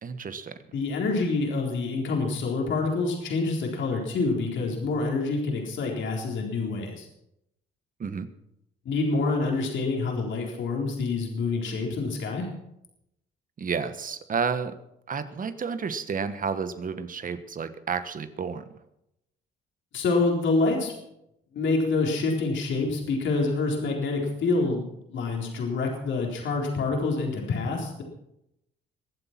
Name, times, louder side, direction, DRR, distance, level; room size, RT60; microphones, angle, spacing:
voice 1, 0.0-0.6 8.0-8.3 13.6-14.8 15.1-18.7, right 6 dB, 45° right, 11 dB, 1.4 m, -31 dB
voice 2, 0.7-7.1 8.9-12.5 19.9-20.9 21.5-28.0, left 3 dB, 70° left, 0 dB, 4.0 m, -27 dB
22.5 x 8.0 x 5.9 m, 0.82 s
cardioid pair, 90°, 20 cm